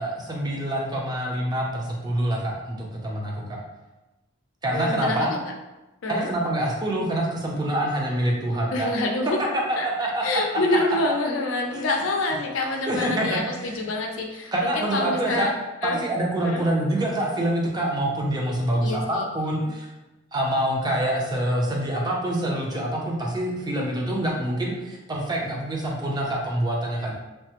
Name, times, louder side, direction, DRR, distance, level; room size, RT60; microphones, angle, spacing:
voice 1, 0.0-3.6 4.6-5.3 6.1-8.9 9.4-10.6 11.7-12.0 12.9-13.9 14.5-15.5 15.8-19.9 20.3-27.1, right 1 dB, 20° right, -1 dB, 0.5 m, -26 dB
voice 2, 4.7-5.4 6.0-6.3 8.7-9.4 9.8-15.5 15.8-16.0 16.4-16.6 18.8-19.3, left 2 dB, 75° left, 2 dB, 0.5 m, -27 dB
3.2 x 2.0 x 2.8 m, 1.0 s
head